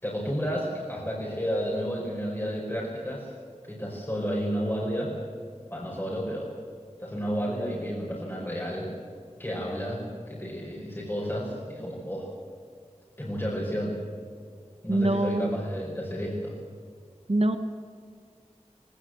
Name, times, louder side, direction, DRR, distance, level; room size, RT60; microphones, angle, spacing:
voice 1, 0.0-3.3 3.6-5.1 5.7-6.5 7.0-8.9 9.4-12.3 13.2-14.0 14.8-16.6, equal, 20° left, -4 dB, 5.3 m, -31 dB
voice 2, 14.9-15.6 17.3-17.6, right 1 dB, 55° right, 9 dB, 1.3 m, -24 dB
19.0 x 18.5 x 7.9 m, 2.2 s
wide cardioid pair, 45°, 12 cm